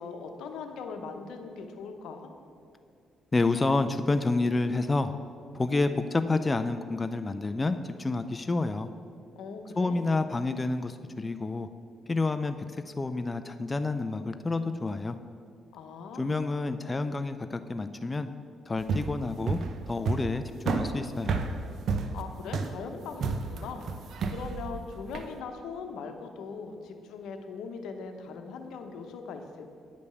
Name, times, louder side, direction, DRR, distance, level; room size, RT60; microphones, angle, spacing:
voice 1, 0.0-2.3 9.4-10.0 15.7-16.4 22.1-29.6, left 5 dB, 80° left, 6 dB, 0.9 m, -40 dB
voice 2, 3.3-5.1 5.5-8.9 9.8-11.7 12.1-15.2 16.2-18.3 18.7-19.6 19.9-21.4, left 3 dB, 25° left, 9 dB, 0.4 m, -29 dB
sound 1, 18.8-25.3, right 4 dB, 65° right, 0.7 m, -31 dB
9.5 x 5.2 x 6.9 m, 2.4 s
cardioid pair, 90°, 0 cm